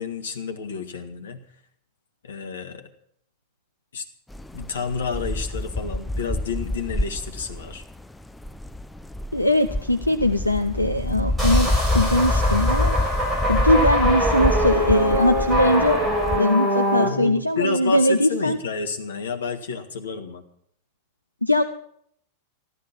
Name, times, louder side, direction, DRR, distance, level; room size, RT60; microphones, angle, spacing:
voice 1, 0.0-1.4 2.2-2.9 3.9-4.0 4.5-7.8 16.9-20.4, left 5 dB, 65° left, 7 dB, 1.7 m, -30 dB
sound 1, 4.3-16.4, left 1 dB, 5° left, 0.5 m, -26 dB
voice 2, 9.3-13.0 13.5-16.0 16.3-18.6 21.4-21.6, left 1 dB, 85° left, 8 dB, 0.6 m, -21 dB
sound 2, 11.4-17.1, equal, 15° right, 6.0 m, -24 dB
14.0 x 12.5 x 6.0 m, 0.66 s
figure-of-eight pair, 90°, 0 cm